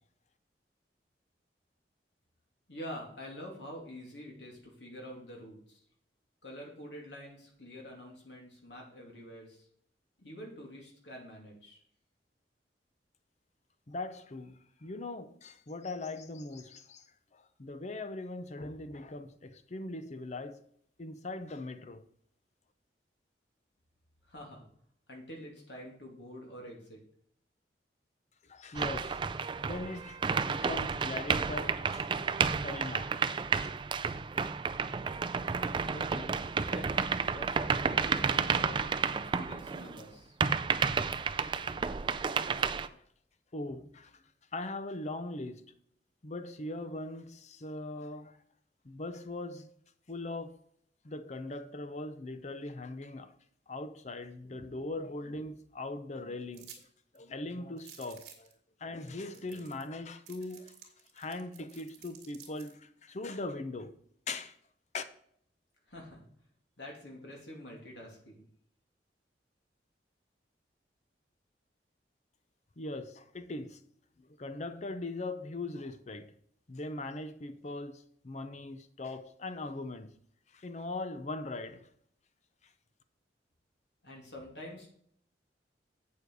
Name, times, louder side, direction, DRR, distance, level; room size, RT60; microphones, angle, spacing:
voice 1, 2.7-5.8 6.4-9.7 10.2-11.8 24.2-24.7 25.1-27.0 35.9-36.4 36.7-38.8 39.1-40.4 65.9-66.2 66.8-68.5 84.0-84.9, equal, 75° left, 2.7 m, -47 dB
voice 2, 13.9-17.0 17.3-20.6 21.0-22.0 28.5-32.1 32.4-33.1 42.9-43.0 43.5-44.2 44.5-45.7 46.2-48.4 48.8-49.7 50.1-50.6 51.0-53.4 53.7-56.7 57.1-58.5 58.8-60.7 61.1-63.9 64.3-64.5 64.9-65.0 72.8-73.8 74.2-76.3 76.7-80.1 80.5-81.9, left 2 dB, 40° left, 0.6 m, -40 dB
sound 1, 28.7-40.0 40.4-42.9, right 5 dB, 25° right, 0.4 m, -31 dB
sound 2, 56.5-56.8 57.1-57.2 57.8-58.5 59.1-59.2 59.3-59.9 60.3-62.7, right 9 dB, 65° right, 1.9 m, -52 dB
8.3 x 6.9 x 4.7 m
head